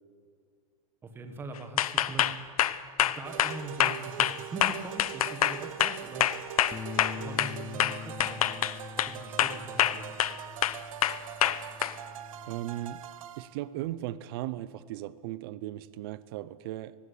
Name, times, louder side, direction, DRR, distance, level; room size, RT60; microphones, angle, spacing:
voice 1, 1.0-2.3 3.0-6.3 7.1-10.1, right 3 dB, 10° right, 1.5 m, -42 dB
sound 1, 1.8-7.5 7.8-9.1 9.4-10.4 10.6-11.9, left 12 dB, 75° left, 0.9 m, -26 dB
sound 2, 3.2-13.5, right 11 dB, 65° right, 1.0 m, -43 dB
Bass guitar, 6.7-13.0, left 6 dB, 10° left, 0.8 m, -44 dB
voice 2, 12.5-13.0 13.4-16.9, right 14 dB, 40° right, 0.6 m, -37 dB
18.5 x 16.0 x 10.0 m
supercardioid pair, 165°, 19 cm